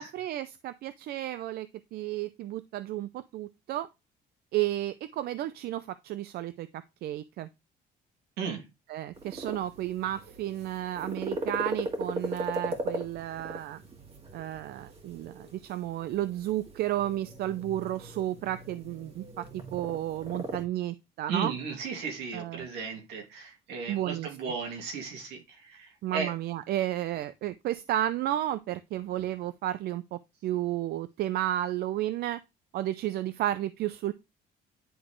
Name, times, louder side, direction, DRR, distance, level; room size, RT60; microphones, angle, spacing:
voice 1, 0.0-3.9 4.5-6.7 7.0-7.5 8.9-13.8 14.3-21.5 22.3-22.7 23.9-24.3 26.0-32.4 32.7-34.1, right 13 dB, 70° right, 0.5 m, -32 dB
sound 1, 9.1-20.6, right 2 dB, 35° right, 1.9 m, -38 dB
voice 2, 21.3-26.3, right 5 dB, 85° right, 2.6 m, -35 dB
10.0 x 3.9 x 3.1 m
cardioid pair, 110°, 17 cm